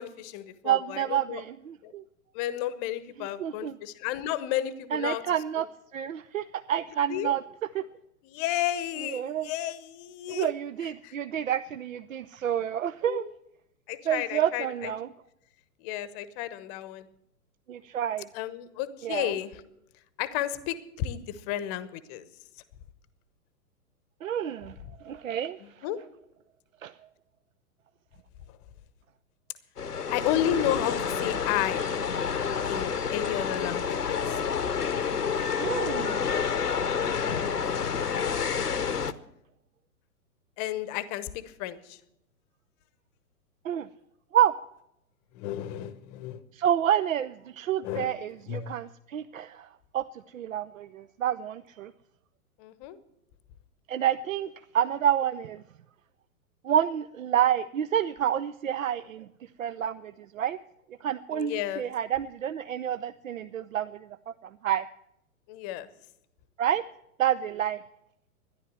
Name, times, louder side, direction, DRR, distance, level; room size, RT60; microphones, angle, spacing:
voice 1, 0.0-1.4 1.8-1.9 2.3-5.2 7.1-7.3 8.2-10.5 11.0-11.2 13.0-13.3 13.9-14.9 15.8-17.1 18.3-19.6 20.2-22.2 25.6-26.0 30.1-31.9 32.7-34.7 40.6-41.3 41.6-42.0 45.3-46.4 47.8-48.1 48.5-48.8 52.6-53.0 61.3-61.8 65.5-65.9, left 12 dB, 25° left, 16 dB, 0.9 m, -32 dB
voice 2, 0.6-2.0 3.2-3.8 4.9-5.7 5.9-7.4 7.7-7.8 9.0-9.5 10.3-13.2 14.1-15.1 17.7-18.3 19.0-19.3 24.2-24.8 25.0-25.6 26.8-26.9 35.6-36.3 43.6-43.9 44.3-44.5 46.5-49.7 49.9-50.0 50.3-51.9 53.9-54.5 54.7-55.6 56.6-59.3 59.6-60.6 61.0-64.3 64.6-64.8 66.6-66.8 67.2-67.8, right 10 dB, 60° right, 14 dB, 0.6 m, -28 dB
sound 1, 29.8-39.1, left 6 dB, 80° left, 1.0 m, -29 dB
13.0 x 11.0 x 7.5 m, 0.81 s
figure-of-eight pair, 110°, 46 cm